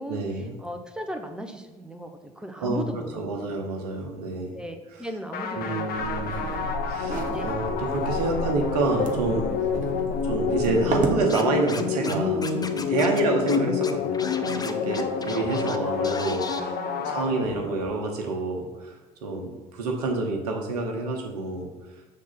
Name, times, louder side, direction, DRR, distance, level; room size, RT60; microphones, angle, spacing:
voice 1, 0.1-0.6 2.6-2.8 3.1-4.6 5.0-5.1 5.5-6.4 6.9-9.5 10.2-21.7, right 3 dB, 85° right, 2 dB, 1.1 m, -28 dB
voice 2, 0.6-3.7 4.5-6.4 7.3-7.5 13.2-13.3 16.6-17.7, right 1 dB, 5° right, 4 dB, 0.9 m, -38 dB
sound 1, 5.3-17.9, left 6 dB, 55° left, 0.8 m, -29 dB
sound 2, 5.9-11.2, right 3 dB, 45° right, 1.1 m, -32 dB
Scratching (performance technique), 11.3-12.1 12.4-13.2 13.5-13.6 13.8-15.8 16.0-16.6, left 4 dB, 20° left, 0.7 m, -36 dB
6.5 x 3.7 x 5.7 m, 1.2 s
hypercardioid pair, 60°, 19 cm